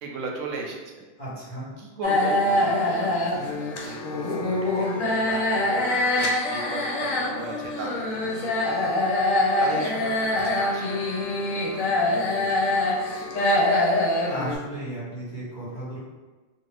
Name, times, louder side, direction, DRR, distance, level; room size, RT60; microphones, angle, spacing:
voice 1, 0.0-1.0 1.8-3.1 3.4-13.7, right 3 dB, 75° right, 1 dB, 0.9 m, -37 dB
voice 2, 1.2-1.7 14.2-16.0, right 1 dB, 35° left, -10 dB, 1.0 m, -34 dB
sound 1, 2.0-14.6, left 1 dB, 80° left, 1.0 m, -24 dB
2.5 x 2.4 x 3.2 m, 1.2 s
omnidirectional pair, 1.4 m